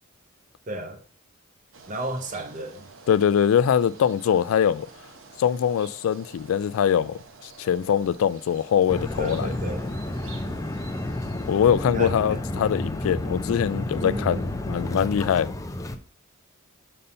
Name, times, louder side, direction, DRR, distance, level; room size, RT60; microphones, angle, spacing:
voice 1, 0.7-1.0 1.9-2.9 9.2-9.9 11.9-12.4 14.0-14.5, right 1 dB, 40° right, 0.7 m, -33 dB
sound 1, 1.7-11.7, right 4 dB, 70° right, 0.9 m, -48 dB
voice 2, 3.1-4.9 5.4-7.2 7.6-9.5 11.5-15.5, left 8 dB, 85° left, 0.3 m, -22 dB
sound 2, 8.9-16.0, left 1 dB, 15° left, 0.4 m, -31 dB
6.7 x 5.5 x 2.6 m
head